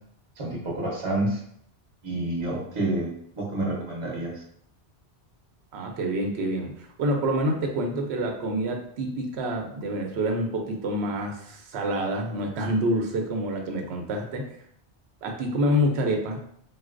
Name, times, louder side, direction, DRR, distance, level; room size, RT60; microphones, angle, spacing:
voice 1, 0.4-1.4 2.0-4.4, right 2 dB, 35° right, -3 dB, 0.7 m, -29 dB
voice 2, 5.7-14.4 15.2-16.4, equal, 75° right, 2 dB, 0.9 m, -27 dB
3.9 x 2.2 x 2.4 m, 0.68 s
omnidirectional pair, 1.1 m